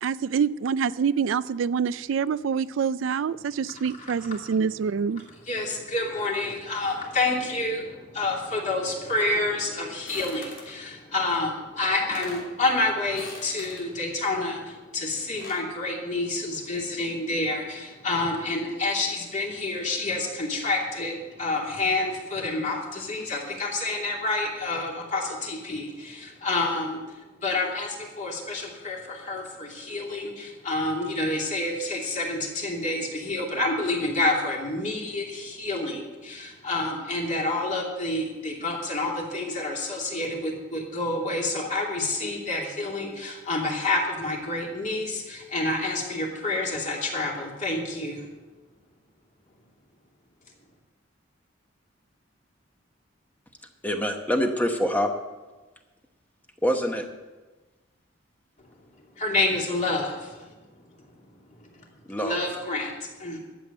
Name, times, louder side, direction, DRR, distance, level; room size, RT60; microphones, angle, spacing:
voice 1, 0.0-5.2, right 6 dB, 80° right, 16 dB, 0.4 m, -26 dB
voice 2, 5.5-48.3 59.2-60.5 61.0-61.1 61.6-61.9 62.2-63.4, left 2 dB, 40° left, -1 dB, 2.7 m, -28 dB
sound 1, 10.1-10.8 11.7-11.8 12.0-12.5 13.1-13.9 15.0-15.7, left 2 dB, 90° left, 3.2 m, -42 dB
voice 3, 53.8-55.1 56.6-57.1 62.1-62.4, equal, 10° left, 4 dB, 1.0 m, -25 dB
12.0 x 7.8 x 7.8 m, 1.2 s
head